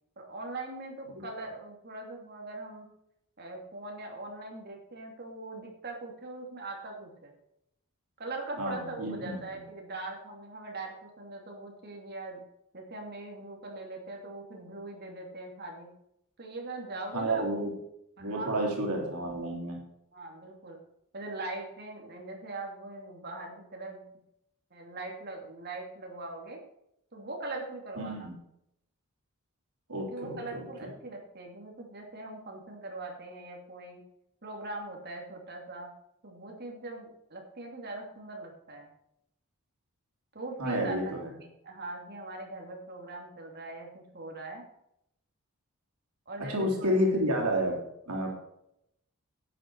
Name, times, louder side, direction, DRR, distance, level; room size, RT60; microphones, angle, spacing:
voice 1, 0.2-2.9 3.4-7.3 8.2-12.4 12.7-15.9 16.4-17.5 18.2-18.7 20.1-20.8 21.1-24.0 24.7-26.6 27.1-28.3 30.0-34.0 34.4-35.9 36.2-38.9 40.3-41.1 41.6-44.6 46.3-46.9, right 2 dB, 45° right, 1 dB, 2.8 m, -41 dB
voice 2, 8.6-9.4 17.1-17.7 18.2-19.8 28.0-28.3 29.9-30.6 40.6-41.3 46.4-48.3, equal, 90° right, 0 dB, 3.2 m, -30 dB
11.5 x 9.1 x 4.7 m, 0.79 s
head